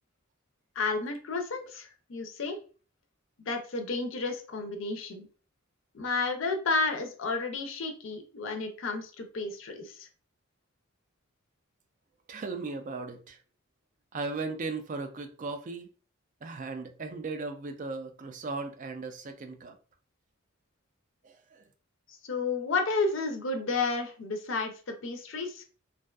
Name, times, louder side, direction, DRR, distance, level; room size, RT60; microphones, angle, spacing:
voice 1, 0.8-2.6 3.4-5.3 5.9-10.1 22.1-25.6, left 3 dB, 65° left, 0.5 m, -32 dB
voice 2, 12.3-13.4 14.1-15.9 16.4-19.7 21.2-21.3, right 3 dB, 40° right, 0.3 m, -37 dB
2.5 x 2.3 x 2.2 m
head